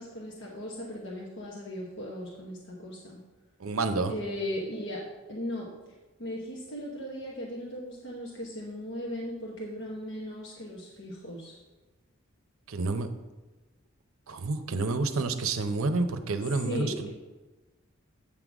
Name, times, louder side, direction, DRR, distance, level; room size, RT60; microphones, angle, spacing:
voice 1, 0.0-3.2 4.1-5.0 5.3-5.7 6.2-11.6 16.6-17.1, equal, 55° left, -3 dB, 1.0 m, -37 dB
voice 2, 3.6-4.1 12.7-13.1 14.3-17.1, right 3 dB, 75° right, 8 dB, 0.6 m, -29 dB
8.5 x 3.8 x 6.0 m, 1.2 s
head